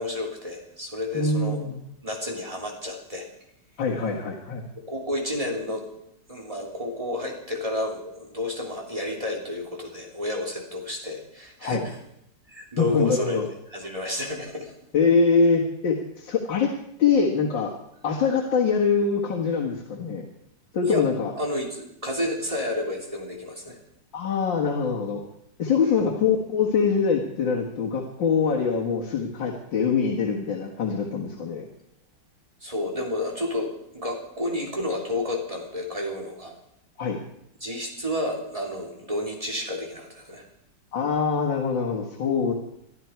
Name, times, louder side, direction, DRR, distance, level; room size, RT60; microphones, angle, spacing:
voice 1, 0.0-1.6 2.0-3.2 4.9-5.8 6.3-12.0 12.5-13.4 13.7-14.7 18.2-18.3 20.8-21.0 21.4-23.8 25.8-26.1 32.6-36.5 37.6-40.5, left 1 dB, 20° right, 0 dB, 3.1 m, -31 dB
voice 2, 1.1-1.8 3.8-4.7 11.6-11.8 12.8-13.5 14.9-16.7 17.0-17.7 18.0-20.3 20.7-21.3 24.1-25.2 25.6-31.7 37.0-37.2 40.9-42.5, left 5 dB, 85° left, -2 dB, 2.5 m, -24 dB
22.5 x 13.0 x 4.6 m, 0.77 s
omnidirectional pair, 2.0 m